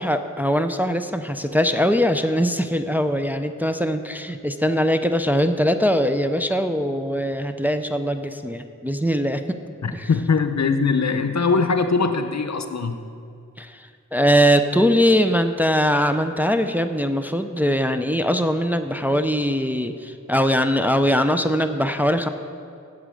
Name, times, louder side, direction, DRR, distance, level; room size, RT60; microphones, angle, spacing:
voice 1, 0.0-9.6 9.9-10.1 13.6-22.3, equal, 5° right, 7 dB, 0.5 m, -21 dB
voice 2, 9.8-13.0, left 4 dB, 60° left, 8 dB, 0.7 m, -21 dB
8.2 x 7.3 x 7.6 m, 2.4 s
wide cardioid pair, 60°, 30 cm